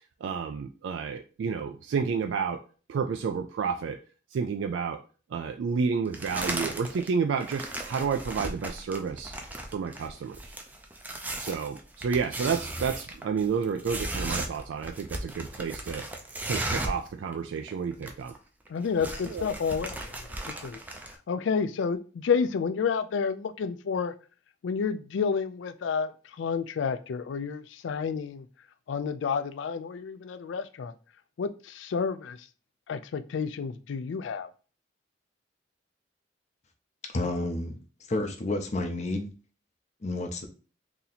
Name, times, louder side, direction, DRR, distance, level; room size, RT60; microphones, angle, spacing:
voice 1, 0.2-2.6 2.9-4.0 4.3-5.0 5.3-9.4 9.7-10.4 11.4-16.0 16.5-18.3 19.3-19.5, right 6 dB, 85° right, 0.3 m, -30 dB
sound 1, 6.1-7.1 7.4-17.1 17.3-17.4 17.7-18.4 18.7-21.2, right 1 dB, 10° right, 0.4 m, -36 dB
voice 2, 18.7-20.3 20.6-20.8 21.3-24.1 24.6-26.1 26.4-28.5 28.9-30.9 31.4-32.4 32.9-34.5, left 6 dB, 85° left, 0.4 m, -30 dB
voice 3, 37.1-37.8 38.1-39.3 40.0-40.5, left 2 dB, 40° left, 0.6 m, -30 dB
2.8 x 2.8 x 4.0 m
head